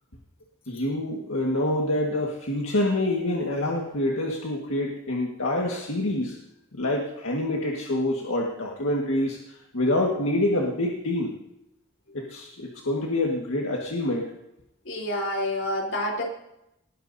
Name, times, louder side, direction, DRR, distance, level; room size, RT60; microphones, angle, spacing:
voice 1, 0.7-6.4 6.7-11.3 12.1-14.3, left 1 dB, 85° left, -2 dB, 1.7 m, -26 dB
voice 2, 14.9-16.2, left 1 dB, 65° left, -1 dB, 3.9 m, -28 dB
19.5 x 16.0 x 2.8 m, 0.85 s
head